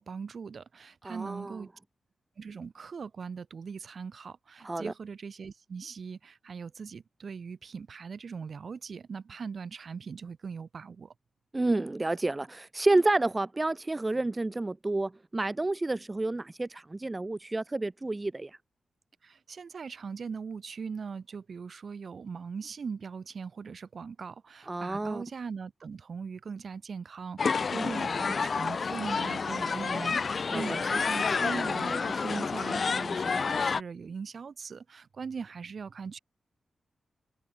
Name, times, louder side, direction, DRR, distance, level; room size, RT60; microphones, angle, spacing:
voice 1, 0.0-1.7 2.4-11.1 19.2-36.2, right 5 dB, 65° right, 4.3 m, -40 dB
voice 2, 1.0-1.5 4.6-4.9 11.5-18.6 24.7-25.2 30.5-30.6, right 2 dB, 30° right, 1.3 m, -29 dB
sound 1, 27.4-33.8, left 5 dB, 60° left, 1.4 m, -29 dB
cardioid pair, 45°, 0 cm